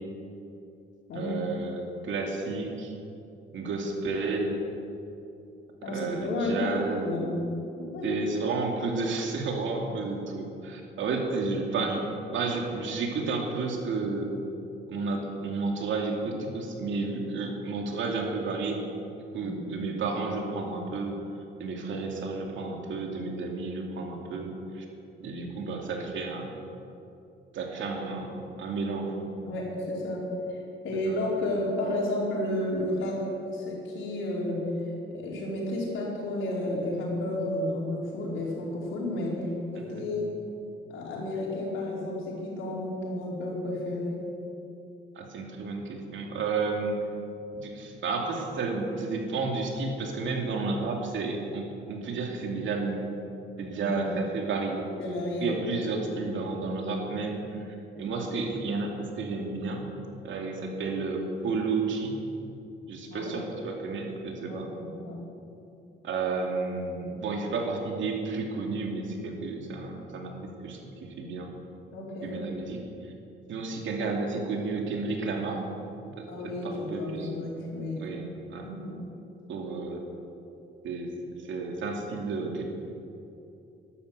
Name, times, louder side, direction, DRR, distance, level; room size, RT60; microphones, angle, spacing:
voice 1, 1.1-3.0 3.5-4.6 5.9-7.2 8.0-12.0 12.3-14.3 14.9-18.8 19.3-21.2 21.6-24.9 25.2-26.5 27.5-29.1 30.9-31.2 39.8-40.0 45.1-47.0 47.5-53.0 53.6-54.9 55.4-59.9 60.2-62.2 62.9-64.7 66.0-71.5 72.2-73.1 73.5-75.7 76.0-77.3 78.0-78.7 79.5-80.1 80.8-81.1 81.4-82.6, right 3 dB, 75° right, 1 dB, 2.7 m, -32 dB
voice 2, 5.8-7.3 7.8-8.2 19.4-19.6 29.4-30.3 30.8-33.2 33.5-34.6 35.1-39.4 39.7-40.3 40.9-44.2 53.8-54.0 55.0-55.6 63.1-63.3 64.4-65.2 71.9-72.4 76.3-78.0 78.6-79.0, left 1 dB, 80° left, -3 dB, 4.6 m, -32 dB
12.5 x 12.0 x 8.1 m, 2.7 s
cardioid pair, 90°, 20 cm